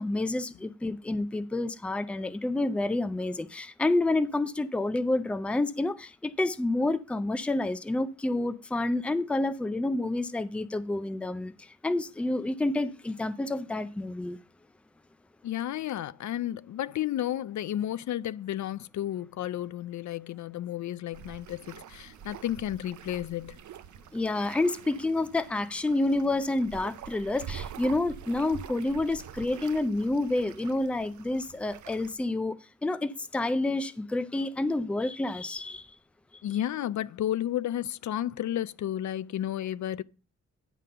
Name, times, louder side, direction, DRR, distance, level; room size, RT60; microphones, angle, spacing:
voice 1, 0.0-14.4 24.1-32.6 32.8-35.9, left 2 dB, 5° left, 0.4 m, -29 dB
voice 2, 15.4-23.6 36.4-40.0, left 12 dB, 80° left, 0.5 m, -32 dB
sound 1, 21.1-32.1, right 8 dB, 85° right, 0.6 m, -46 dB
10.0 x 3.7 x 6.6 m
wide cardioid pair, 165°, 29 cm